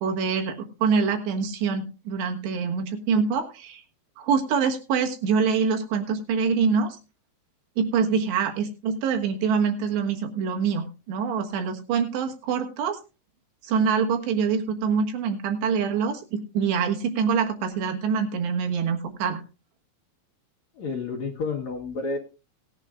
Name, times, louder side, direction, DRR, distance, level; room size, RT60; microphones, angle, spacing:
voice 1, 0.0-3.8 4.2-7.0 7.8-13.0 13.6-19.4, right 6 dB, 70° right, 4 dB, 3.6 m, -25 dB
voice 2, 20.8-22.2, left 4 dB, 65° left, 2 dB, 1.7 m, -30 dB
18.5 x 10.5 x 2.4 m, 0.30 s
omnidirectional pair, 5.3 m